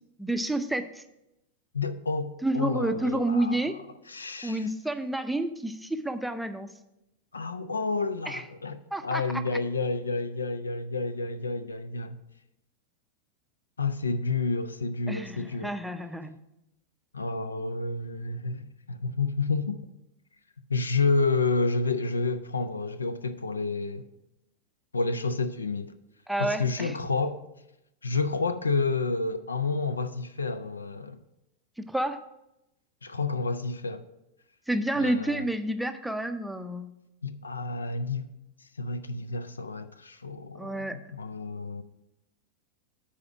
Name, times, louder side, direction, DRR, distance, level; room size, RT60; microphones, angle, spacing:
voice 1, 0.2-1.0 2.4-3.8 4.4-6.7 8.3-8.4 8.9-9.2 15.1-16.4 26.3-26.9 31.8-32.2 34.7-36.9 40.6-41.0, right 1 dB, ahead, 0.5 m, -29 dB
voice 2, 1.7-3.7 4.1-4.7 7.3-12.2 13.8-15.7 17.1-19.8 20.7-24.0 24.9-25.9 26.4-27.4 28.0-31.2 33.0-34.1 35.0-35.5 37.2-38.3 38.8-41.8, left 3 dB, 75° left, 0.4 m, -30 dB
9.7 x 4.2 x 5.9 m
figure-of-eight pair, 90°, 0 cm